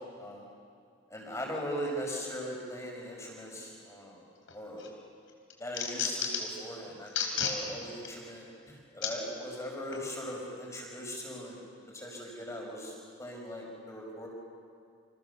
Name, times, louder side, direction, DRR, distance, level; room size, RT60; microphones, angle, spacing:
voice 1, 0.2-0.5 1.1-4.2 4.5-4.8 5.6-11.6 11.9-14.3, equal, 15° left, -1 dB, 5.9 m, -40 dB
sound 1, 4.5-4.9 5.3-6.6 7.1-7.6 8.0-8.1 9.0-9.1 9.9-10.0, left 7 dB, 70° left, 4.0 m, -32 dB
30.0 x 27.5 x 7.1 m, 2.3 s
head